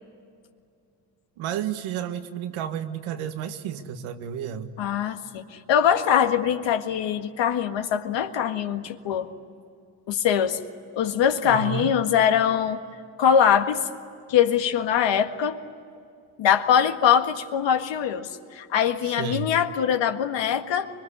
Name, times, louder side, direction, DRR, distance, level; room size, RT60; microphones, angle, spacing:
voice 1, 1.4-4.8 11.4-11.9 19.0-19.5, right 8 dB, 85° right, 8 dB, 1.7 m, -31 dB
voice 2, 4.8-9.3 10.1-10.6 10.9-12.8 13.2-13.9 14.3-15.6 16.4-20.9, left 8 dB, 70° left, 7 dB, 1.8 m, -22 dB
24.5 x 22.5 x 9.9 m, 2.4 s
supercardioid pair, 75°, 47 cm